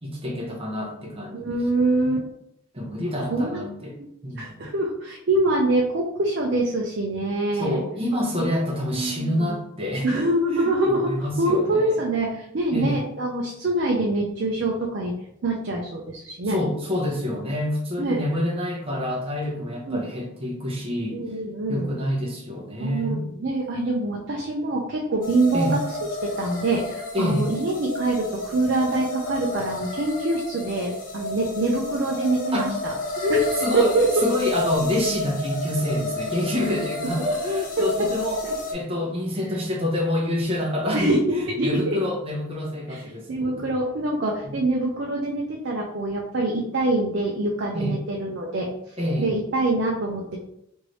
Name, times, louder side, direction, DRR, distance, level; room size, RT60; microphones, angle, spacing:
voice 1, 0.0-1.5 2.7-4.7 7.5-10.3 10.5-11.9 12.7-13.1 16.4-21.2 21.7-23.2 25.5-25.8 27.1-27.5 32.5-32.7 33.2-38.4 38.7-43.7 44.4-44.5 47.7-48.0 49.0-49.3, left 1 dB, 30° right, -1 dB, 0.8 m, -27 dB
voice 2, 1.3-2.2 3.3-3.6 4.0-4.1 4.4-7.8 8.4-8.5 8.9-9.6 10.0-15.1 15.4-16.6 18.0-18.2 19.9-20.0 21.1-21.9 22.8-25.8 26.2-32.9 33.7-34.1 37.2-37.3 37.8-37.9 38.4-38.5 40.9-42.0 42.9-43.0 43.3-48.7 49.2-50.4, right 2 dB, 55° right, -2 dB, 0.5 m, -25 dB
sound 1, 25.2-38.7, left 2 dB, 40° left, 0.6 m, -31 dB
3.1 x 2.6 x 3.1 m, 0.77 s
head